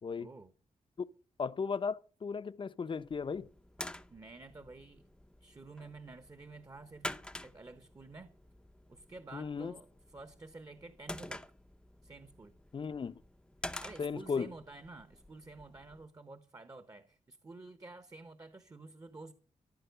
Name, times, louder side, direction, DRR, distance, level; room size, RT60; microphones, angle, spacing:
voice 1, 0.2-0.5 4.1-5.0 5.4-7.1 7.4-8.4 8.9-11.5 12.0-12.5 13.6-19.3, right 3 dB, 25° right, 1.2 m, -50 dB
voice 2, 1.4-3.5 9.3-9.7 12.7-13.2 14.0-14.5, left 5 dB, 40° left, 0.8 m, -36 dB
sound 1, 3.0-16.1, left 1 dB, 5° left, 0.7 m, -48 dB
14.0 x 11.5 x 6.8 m
wide cardioid pair, 125°, 13 cm